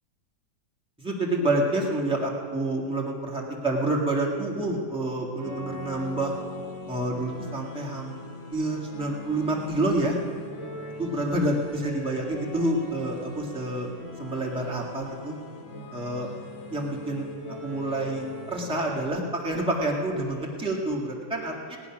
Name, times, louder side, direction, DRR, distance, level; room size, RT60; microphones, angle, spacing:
voice 1, 1.0-6.3 6.9-8.2 8.5-10.2 11.0-13.9 14.2-15.4 15.9-16.3 16.7-17.3 17.6-21.8, right 1 dB, 5° right, -2 dB, 1.7 m, -28 dB
sound 1, 5.3-19.0, left 2 dB, 45° left, 1.6 m, -41 dB
18.5 x 10.0 x 5.9 m, 2.3 s
omnidirectional pair, 2.1 m